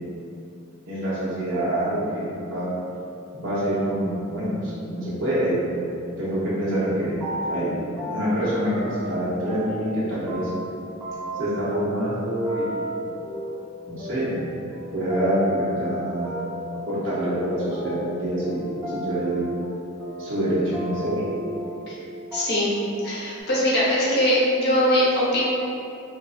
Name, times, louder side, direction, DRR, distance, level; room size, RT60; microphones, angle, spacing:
voice 1, 0.9-2.7 3.3-5.9 6.2-7.2 7.5-7.8 8.1-10.5 11.4-13.2 13.9-14.4 14.9-16.4 16.9-19.5 20.2-21.2, right 1 dB, 75° right, -10 dB, 0.9 m, -26 dB
sound 1, 6.8-7.7 8.0-10.0 10.3-22.0 22.3-22.8 23.0-23.4, equal, 15° right, 0.7 m, -34 dB
voice 2, 22.3-22.7 23.0-25.5, equal, 55° left, -7 dB, 0.8 m, -21 dB
3.9 x 2.6 x 2.3 m, 2.6 s
head